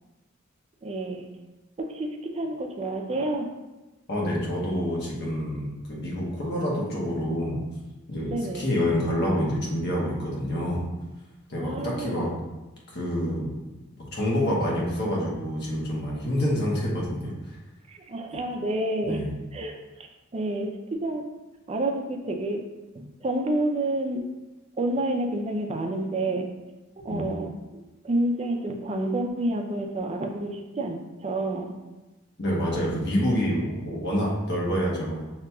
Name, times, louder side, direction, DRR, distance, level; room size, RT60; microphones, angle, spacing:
voice 1, 0.8-1.3 1.8-3.5 8.2-8.7 11.6-12.3 17.9-19.2 19.5-19.8 20.3-21.3 21.7-22.7 22.9-24.2 24.8-26.5 27.0-27.5 28.0-31.7, right 1 dB, 30° right, 3 dB, 0.5 m, -29 dB
voice 2, 4.1-7.6 8.1-10.9 11.5-12.3 12.9-13.6 14.1-17.5 19.0-19.3 27.1-27.2 32.4-35.2, equal, 55° left, -4 dB, 1.1 m, -27 dB
6.0 x 2.8 x 2.3 m, 1.1 s
head